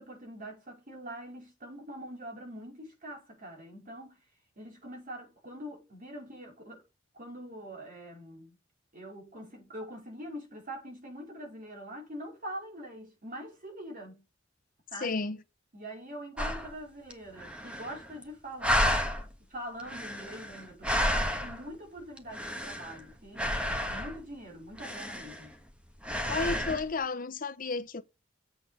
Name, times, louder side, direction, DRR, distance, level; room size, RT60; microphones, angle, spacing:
voice 1, 0.0-4.2 4.6-6.8 7.1-8.6 8.9-14.2 14.9-15.2 15.7-18.9 19.5-25.5, equal, 45° right, 4.6 m, -44 dB
voice 2, 15.0-15.4 26.3-28.0, left 4 dB, 45° left, 0.8 m, -32 dB
sound 1, 16.4-16.7 17.1-17.2 17.4-18.2 18.6-19.3 19.8-21.7 22.2-23.0 23.4-24.2 24.8-25.7 26.0-26.8, equal, 5° right, 1.3 m, -31 dB
7.9 x 6.6 x 5.6 m
head